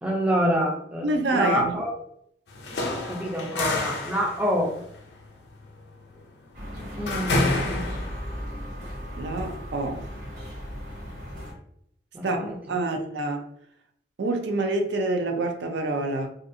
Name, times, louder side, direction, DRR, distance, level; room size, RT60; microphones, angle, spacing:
voice 1, 0.0-1.9 2.7-4.7 7.0-7.9 12.1-12.6, equal, 10° right, 0.4 m, -27 dB
voice 2, 1.0-1.8 9.2-10.1 12.2-13.4 14.2-16.3, right 2 dB, 80° right, 0.4 m, -27 dB
sound 1, 2.5-8.4, left 2 dB, 70° left, 0.5 m, -29 dB
sound 2, 6.5-11.5, equal, 50° right, 1.3 m, -36 dB
2.5 x 2.4 x 2.6 m
head